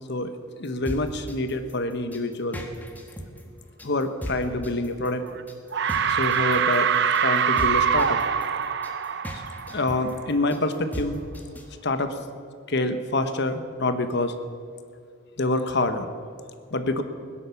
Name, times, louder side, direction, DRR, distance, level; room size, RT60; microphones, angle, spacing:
voice 1, 0.6-2.6 3.8-5.2 6.0-6.9 7.2-8.2 9.3-9.4 9.7-11.2 11.8-12.1 12.7-14.3 15.4-16.1 16.7-17.0, left 2 dB, 55° left, 9 dB, 1.1 m, -26 dB
sound 1, 0.6-11.7, equal, 10° left, 1.2 m, -37 dB
sound 2, 5.1-5.4 5.7-10.3, right 7 dB, 55° right, 0.6 m, -24 dB
16.5 x 10.5 x 7.1 m, 2.2 s
head